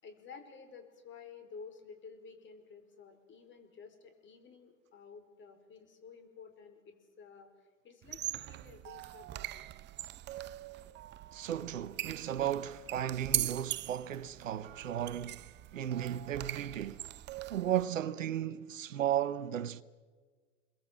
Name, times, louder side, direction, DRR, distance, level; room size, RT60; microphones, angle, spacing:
voice 1, 0.0-9.7, left 5 dB, 30° left, 4.8 m, -53 dB
sound 1, 8.0-17.8, right 14 dB, 30° right, 0.7 m, -41 dB
voice 2, 11.3-15.5 15.7-17.0 17.5-19.8, right 10 dB, 85° right, 1.0 m, -35 dB
29.0 x 22.5 x 7.5 m
hypercardioid pair, 100°, 38 cm